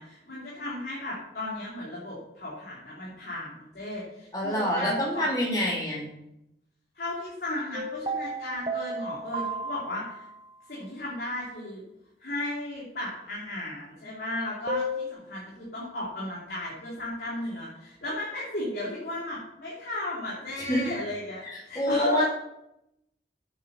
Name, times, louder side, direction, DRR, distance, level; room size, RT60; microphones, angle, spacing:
voice 1, 0.0-5.2 5.5-5.6 6.9-10.3 10.7-11.8 12.2-22.2, left 1 dB, 65° left, -7 dB, 3.1 m, -35 dB
voice 2, 4.3-6.0 20.7-20.9 21.7-22.2, equal, 20° left, -4 dB, 2.7 m, -26 dB
sound 1, 7.7-10.5 14.7-15.1, right 1 dB, 30° right, 0.9 m, -33 dB
8.8 x 6.7 x 6.8 m, 0.85 s
head